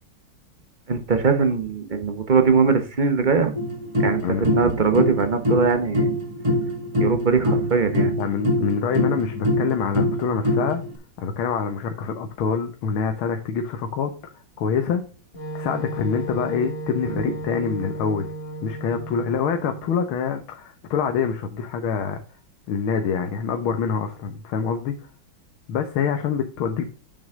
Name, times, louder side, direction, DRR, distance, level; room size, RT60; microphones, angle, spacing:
voice 1, 0.9-3.5 4.0-6.1 6.5-6.6 7.0-8.2 17.1-17.3, right 5 dB, 35° right, 0.9 m, -21 dB
sound 1, 3.6-10.9, left 1 dB, 15° right, 1.7 m, -24 dB
voice 2, 8.2-10.8 11.2-14.1 14.6-15.0 15.5-18.3 18.6-22.2 22.7-25.0 25.7-26.8, left 6 dB, 90° left, 1.9 m, -25 dB
Wind instrument woodwind instrument, 15.3-20.0, right 2 dB, 30° left, 2.1 m, -34 dB
8.8 x 6.4 x 3.7 m
omnidirectional pair, 2.2 m